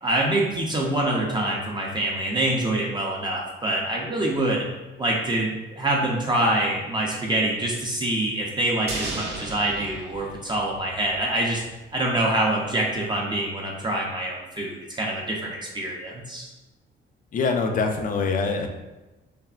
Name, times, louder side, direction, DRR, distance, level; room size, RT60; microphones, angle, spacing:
voice 1, 0.0-4.6 5.0-11.6 11.9-16.5, right 1 dB, 20° right, -3 dB, 0.4 m, -25 dB
sound 1, 8.9-11.3 11.5-11.6, right 2 dB, 55° right, 0.7 m, -35 dB
voice 2, 17.3-18.7, left 4 dB, 45° left, 5 dB, 0.4 m, -24 dB
3.3 x 2.0 x 2.3 m, 1.1 s
cardioid pair, 90°, 20 cm